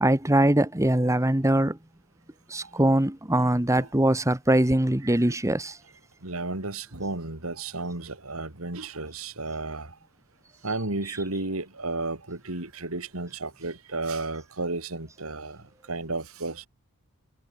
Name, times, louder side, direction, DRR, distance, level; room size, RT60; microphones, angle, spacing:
voice 1, 0.0-1.8 2.5-5.7, right 1 dB, 15° right, 1.4 m, -22 dB
voice 2, 5.0-5.4 6.2-9.9 10.6-16.7, right 2 dB, 75° right, 3.2 m, -33 dB
head